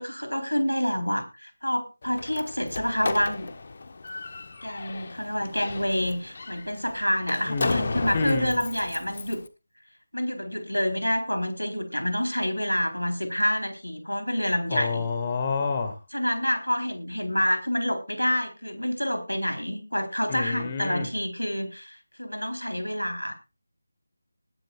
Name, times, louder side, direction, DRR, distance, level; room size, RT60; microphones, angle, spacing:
voice 1, 0.0-3.5 4.6-9.4 10.1-15.0 16.1-23.3, equal, 85° left, 7 dB, 4.0 m, -28 dB
Slam, 2.0-9.5, left 3 dB, 40° left, 1.2 m, -34 dB
voice 2, 7.5-8.6 14.7-16.0 20.3-21.1, left 4 dB, 20° left, 6 dB, 1.9 m, -29 dB
20.0 x 11.5 x 2.5 m, 0.28 s
figure-of-eight pair, 160°, 0 cm